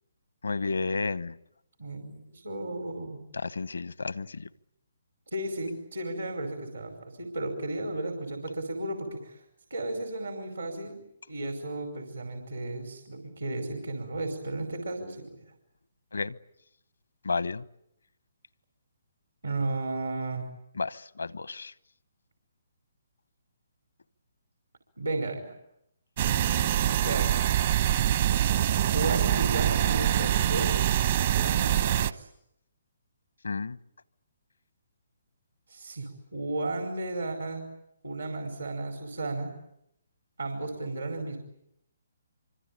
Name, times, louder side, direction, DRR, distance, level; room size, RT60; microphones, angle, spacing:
voice 1, 0.4-1.4 3.3-4.5 16.1-16.4 17.2-17.6 20.8-21.7 33.4-33.8, left 4 dB, 80° left, 18 dB, 1.0 m, -32 dB
voice 2, 1.8-3.2 5.3-9.4 9.7-11.0 11.3-15.4 19.4-20.4 25.0-25.5 27.0-27.4 28.9-30.9 31.3-32.3 35.7-37.6 38.0-39.5 40.4-41.4, right 2 dB, 85° right, 4 dB, 5.0 m, -34 dB
sound 1, 26.2-32.1, right 11 dB, 50° right, 1.1 m, -25 dB
25.5 x 25.5 x 8.7 m, 0.78 s
figure-of-eight pair, 135°, 0 cm